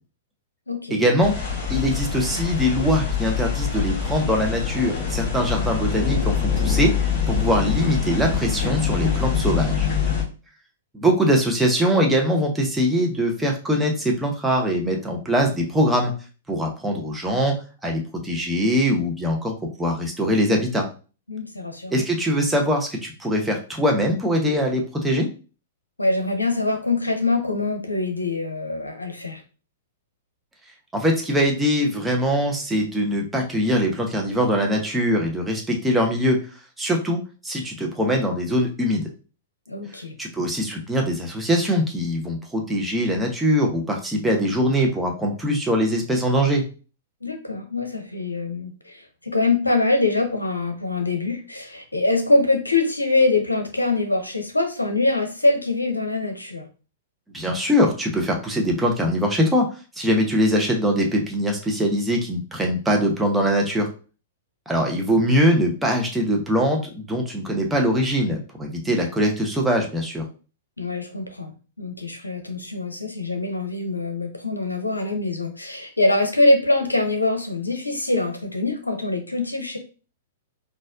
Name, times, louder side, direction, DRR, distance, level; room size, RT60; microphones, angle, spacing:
voice 1, 0.9-1.3 1.7-9.9 10.9-16.1 16.5-17.5 17.8-19.5 19.8-20.9 21.9-25.3 30.9-36.4 36.8-39.0 40.2-46.6 57.3-59.7 59.9-63.9 64.7-70.2, equal, 5° right, 0 dB, 0.8 m, -22 dB
sound 1, 1.2-10.2, left 6 dB, 45° left, 1.7 m, -24 dB
voice 2, 21.3-22.0 26.0-29.4 39.7-40.1 47.2-56.6 70.8-71.5 71.8-79.8, left 2 dB, 90° left, 5 dB, 0.7 m, -23 dB
4.0 x 2.5 x 2.5 m, 0.36 s
figure-of-eight pair, 105°, 0 cm